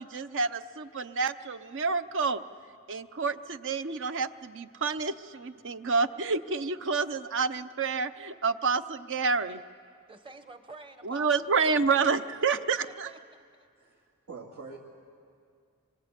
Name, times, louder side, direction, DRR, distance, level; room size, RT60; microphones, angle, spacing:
voice 1, 0.0-2.4 2.9-9.6 11.0-13.1, right 4 dB, 60° right, 12 dB, 0.7 m, -29 dB
voice 2, 10.1-12.1 12.8-13.7, right 2 dB, 25° right, 8 dB, 1.2 m, -49 dB
voice 3, 13.8-14.8, right 4 dB, 75° right, -6 dB, 2.6 m, -45 dB
26.0 x 24.0 x 8.2 m, 2.3 s
head